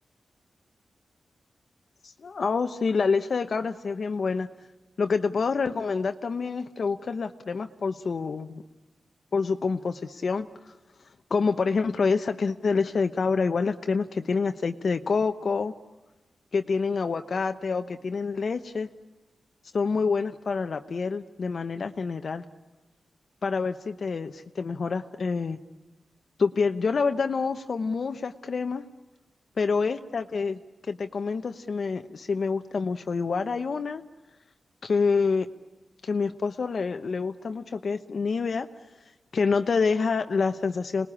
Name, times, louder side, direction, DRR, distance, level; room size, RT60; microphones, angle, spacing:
voice 1, 2.0-4.5 5.0-8.6 9.3-10.5 11.3-15.7 16.5-18.9 19.7-22.4 23.4-25.6 26.4-28.8 29.6-30.6 30.9-34.0 34.8-35.5 36.0-38.7 39.3-41.1, left 4 dB, 55° left, 7 dB, 1.0 m, -27 dB
27.5 x 20.0 x 9.9 m, 1.1 s
wide cardioid pair, 115°, 0 cm